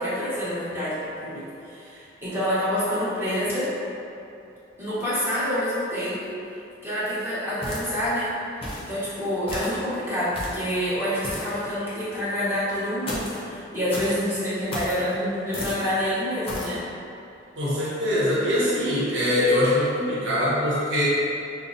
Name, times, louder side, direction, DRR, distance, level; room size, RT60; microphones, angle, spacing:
voice 1, 0.0-3.7 4.8-6.4 6.8-8.3 8.8-16.8, equal, 10° right, -11 dB, 1.0 m, -27 dB
sound 1, 7.6-8.1 8.6-8.9 9.5-9.8 10.3-10.7 11.2-11.6 13.1-13.4 13.9-14.2 14.7-15.0 15.5-15.9 16.5-16.8, left 1 dB, 30° left, 0.7 m, -33 dB
voice 2, 17.6-21.0, left 1 dB, 70° right, -8 dB, 0.9 m, -23 dB
5.4 x 2.0 x 2.6 m, 2.7 s
head